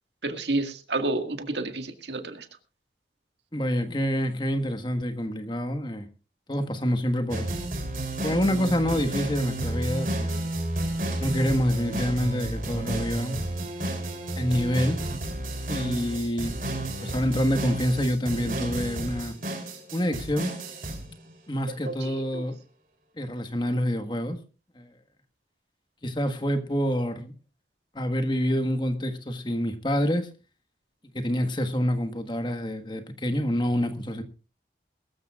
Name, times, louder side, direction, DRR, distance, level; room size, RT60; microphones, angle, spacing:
voice 1, 0.2-2.5 21.9-22.4, right 2 dB, 85° right, 6 dB, 1.9 m, -30 dB
voice 2, 3.5-6.1 6.5-7.5 8.2-10.5 11.2-13.4 14.4-15.0 15.7-16.6 17.0-19.4 19.9-20.5 21.5-22.6 23.2-24.4 24.7-24.9 26.0-27.3 27.9-30.3 31.1-34.2, equal, 25° left, 8 dB, 1.5 m, -27 dB
sound 1, 7.3-21.3, right 1 dB, 50° right, 3.5 m, -31 dB
22.0 x 13.5 x 2.4 m, 0.34 s
head